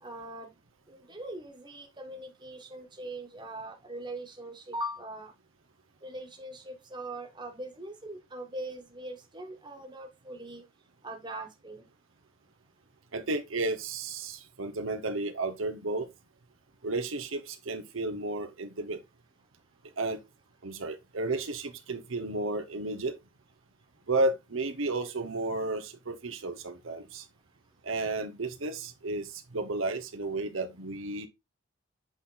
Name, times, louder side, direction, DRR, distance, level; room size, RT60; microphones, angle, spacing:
voice 1, 0.0-0.5 0.9-5.3 6.0-10.6 11.0-11.9, right 1 dB, 25° right, 1.4 m, -41 dB
voice 2, 13.1-16.1 16.8-19.0 20.0-20.2 20.6-23.2 24.1-27.3 27.8-31.3, right 2 dB, 85° right, 1.0 m, -32 dB
8.1 x 4.2 x 3.9 m
head